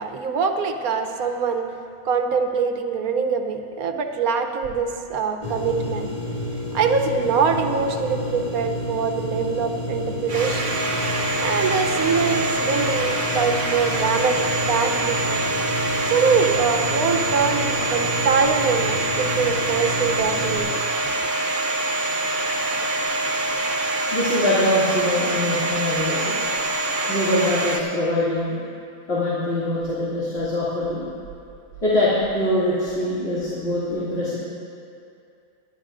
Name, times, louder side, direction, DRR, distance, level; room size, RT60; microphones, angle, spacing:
voice 1, 0.0-1.7 2.0-6.1 6.7-10.7 11.4-15.4 16.0-20.8, right 5 dB, 85° right, 6 dB, 1.3 m, -23 dB
sound 1, 5.4-20.6, left 1 dB, 30° left, 1.6 m, -30 dB
Domestic sounds home sounds, 10.3-27.8, right 2 dB, 60° right, 1.3 m, -25 dB
voice 2, 24.1-26.4 27.1-28.6 29.1-31.1 31.8-34.4, left 1 dB, 45° left, -11 dB, 2.9 m, -23 dB
24.5 x 11.0 x 2.6 m, 2.5 s
omnidirectional pair, 1.5 m